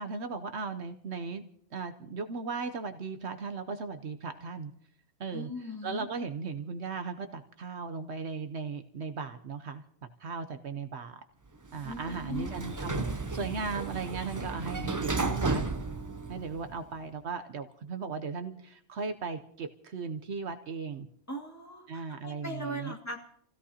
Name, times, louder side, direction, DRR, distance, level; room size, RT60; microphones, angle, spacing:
voice 1, 0.0-1.4 1.7-4.7 5.2-5.5 5.8-9.8 10.2-11.2 11.7-15.6 16.3-21.1 21.9-22.9, right 5 dB, 65° right, 8 dB, 1.0 m, -37 dB
voice 2, 5.3-6.0 11.8-12.5 21.3-23.2, equal, 15° left, -1 dB, 2.2 m, -39 dB
Sliding door, 11.7-16.9, right 3 dB, 20° right, 0.5 m, -34 dB
29.0 x 16.0 x 2.8 m, 0.68 s
omnidirectional pair, 1.2 m